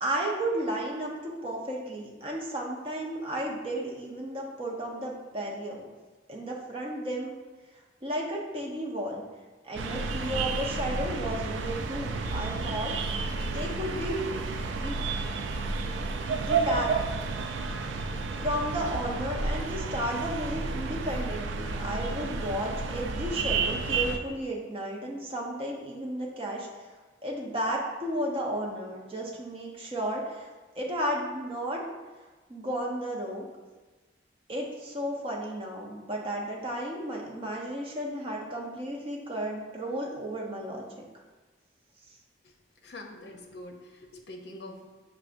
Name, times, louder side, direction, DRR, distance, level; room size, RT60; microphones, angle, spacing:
voice 1, 0.0-5.8 6.3-7.3 8.0-9.2 9.6-13.2 13.5-14.2 14.7-15.0 16.2-16.9 18.4-26.9 27.2-30.5 30.8-31.8 32.5-33.5 34.5-40.9, right 1 dB, 30° right, -2 dB, 0.7 m, -33 dB
sound 1, 9.8-24.2, right 4 dB, 85° right, 0.4 m, -31 dB
voice 2, 42.8-44.8, left 1 dB, 60° left, 2 dB, 0.6 m, -44 dB
6.1 x 3.3 x 2.6 m, 1.2 s
head